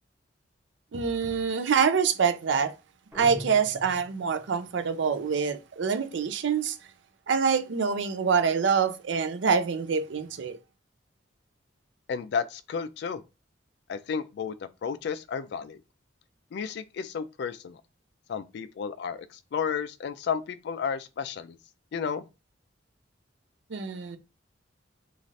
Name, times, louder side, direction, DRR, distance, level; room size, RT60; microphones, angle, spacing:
voice 1, 0.9-2.7 3.1-6.8 7.3-10.6 23.7-24.2, right 6 dB, 70° right, 0.4 m, -25 dB
sound 1, 3.1-4.6, equal, 15° right, 0.9 m, -42 dB
voice 2, 12.1-13.2 13.9-15.8 16.5-17.8 18.3-21.6 21.9-22.2, left 6 dB, 60° left, 0.3 m, -32 dB
3.1 x 2.4 x 2.6 m
head